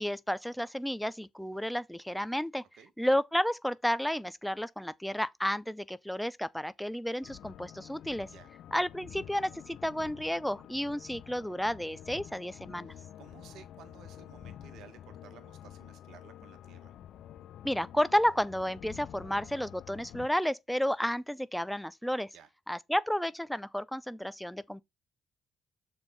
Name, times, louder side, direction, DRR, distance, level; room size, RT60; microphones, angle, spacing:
voice 1, 0.0-2.6 3.0-8.3 8.7-12.9 17.6-22.3 22.7-24.8, equal, ahead, 0.5 m, -32 dB
sound 1, 7.2-20.3, left 11 dB, 75° left, 0.5 m, -49 dB
voice 2, 12.9-16.9 22.3-22.5, right 9 dB, 80° right, 1.2 m, -55 dB
6.9 x 4.4 x 4.0 m
cardioid pair, 90°, 0 cm